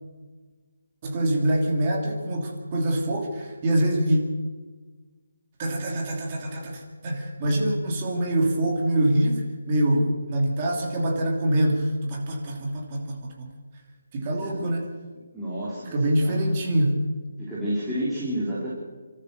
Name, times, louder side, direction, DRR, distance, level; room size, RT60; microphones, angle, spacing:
voice 1, 1.0-4.2 5.6-13.5 14.1-14.9 15.9-17.0, right 1 dB, 20° right, 0 dB, 3.0 m, -25 dB
voice 2, 14.1-14.6 15.3-16.4 17.4-18.7, equal, 5° right, -10 dB, 3.3 m, -30 dB
29.5 x 13.5 x 6.7 m, 1.4 s
hypercardioid pair, 175°, 0 cm